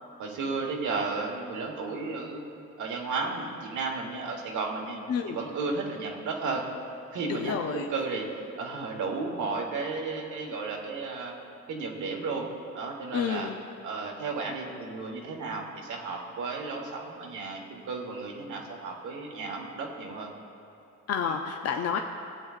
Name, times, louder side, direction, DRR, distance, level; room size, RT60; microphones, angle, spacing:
voice 1, 0.2-2.5 2.8-5.0 5.3-6.6 7.1-8.3 8.6-11.3 11.7-12.5 12.7-13.5 13.8-20.3 21.2-21.3, right 4 dB, 80° right, 0 dB, 1.4 m, -33 dB
voice 2, 7.3-7.9 13.1-13.6 21.1-22.0, left 7 dB, 55° left, 4 dB, 0.6 m, -29 dB
16.5 x 8.0 x 2.5 m, 2.9 s
cardioid pair, 90°, 30 cm